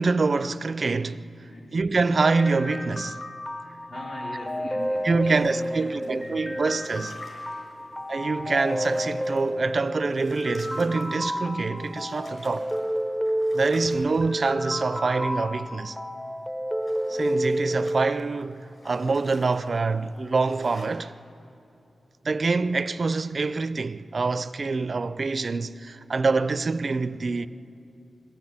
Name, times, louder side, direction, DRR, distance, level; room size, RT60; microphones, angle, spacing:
voice 1, 0.0-1.3 1.7-3.2 4.8-7.3 8.1-12.7 13.5-16.0 17.1-21.1 22.2-27.5, right 3 dB, 45° right, 0.4 m, -26 dB
voice 2, 1.5-1.8 3.9-6.6 7.7-8.0, left 1 dB, 85° left, 4.7 m, -42 dB
sound 1, 2.2-18.2, equal, 10° left, 0.6 m, -30 dB
sound 2, 5.0-7.7 8.2-9.6 9.8-14.9 16.5-20.9, left 1 dB, 45° left, 5.7 m, -48 dB
21.5 x 14.5 x 8.6 m
wide cardioid pair, 115°, 0 cm